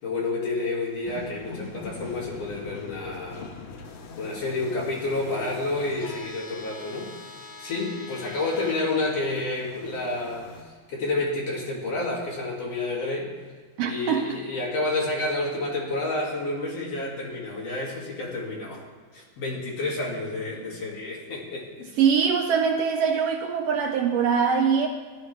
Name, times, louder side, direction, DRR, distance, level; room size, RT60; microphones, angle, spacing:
voice 1, 0.0-3.5 4.2-7.2 7.6-13.3 13.8-18.8 19.1-21.9, left 2 dB, 60° left, -4 dB, 3.5 m, -29 dB
sound 1, 1.0-10.6, left 3 dB, 75° left, 2.3 m, -42 dB
voice 2, 13.8-14.4 22.0-24.9, right 6 dB, 80° right, 3 dB, 1.4 m, -23 dB
15.5 x 11.5 x 3.4 m, 1.5 s
omnidirectional pair, 3.3 m